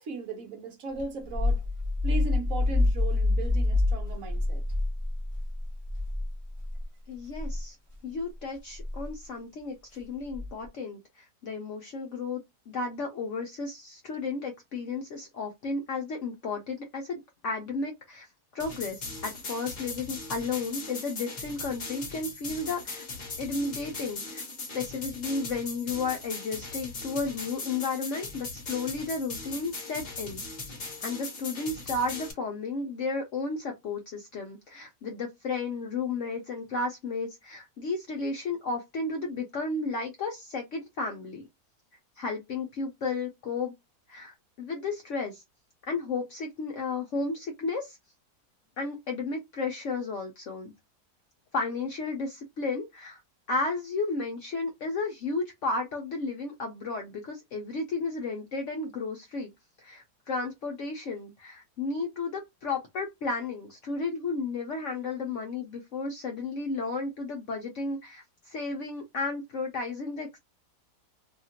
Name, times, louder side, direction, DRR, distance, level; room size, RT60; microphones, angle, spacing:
voice 1, 0.0-1.6 2.0-4.6, right 4 dB, 65° right, 1.0 m, -37 dB
sound 1, 1.0-6.8 7.3-7.6 8.8-9.1 10.3-10.7, left 2 dB, 25° right, 0.7 m, -27 dB
voice 2, 7.1-7.8 8.0-12.4 12.7-18.3 18.5-23.1 23.4-24.4 24.7-30.4 31.0-41.4 42.2-43.7 44.1-45.4 45.9-48.0 48.8-50.7 51.5-53.2 53.5-59.5 59.8-70.4, left 3 dB, 65° left, 0.7 m, -33 dB
sound 2, 18.6-32.3, left 3 dB, 40° left, 0.8 m, -39 dB
2.8 x 2.4 x 2.8 m
omnidirectional pair, 1.8 m